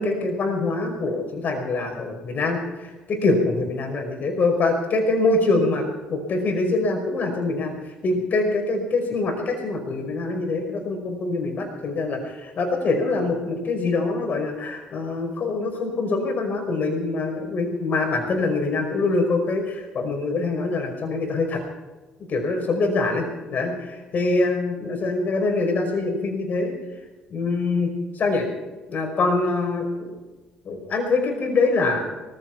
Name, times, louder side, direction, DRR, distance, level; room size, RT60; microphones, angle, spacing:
voice 1, 0.0-7.7 8.0-21.6 22.3-26.8 27.3-28.5 28.9-30.1 30.7-32.0, left 3 dB, 45° left, 4 dB, 5.3 m, -24 dB
18.5 x 15.0 x 4.7 m, 1.2 s
hypercardioid pair, 50°, 4 cm